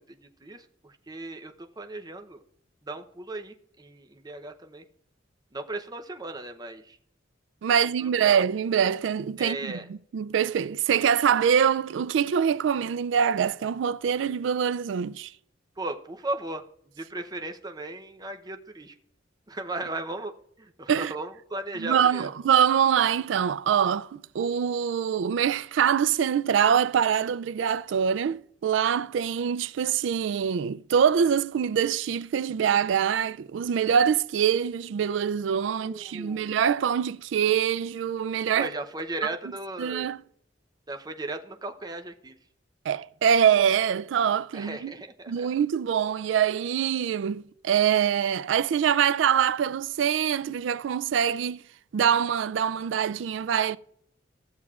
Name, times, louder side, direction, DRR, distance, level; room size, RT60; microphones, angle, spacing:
voice 1, 0.1-2.4 2.8-4.8 5.5-7.0 7.6-8.4 9.4-9.8 15.8-16.6 17.0-18.9 19.5-20.3 20.6-22.3 35.7-36.5 38.6-40.1 40.9-42.4 44.5-45.5, right 2 dB, 20° right, 0.7 m, -36 dB
voice 2, 7.6-15.3 20.9-21.1 21.8-38.7 39.8-40.2 42.9-44.9 45.3-51.6 51.9-53.8, right 8 dB, 70° right, 0.3 m, -24 dB
16.0 x 7.1 x 2.4 m
head